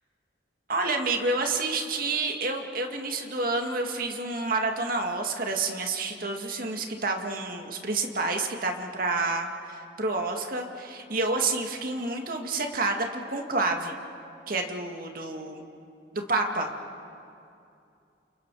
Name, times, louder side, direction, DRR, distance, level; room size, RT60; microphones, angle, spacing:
voice 1, 0.7-14.0 14.5-15.6 16.1-16.7, right 3 dB, 50° right, 3 dB, 2.2 m, -29 dB
29.5 x 29.0 x 4.9 m, 2.6 s
head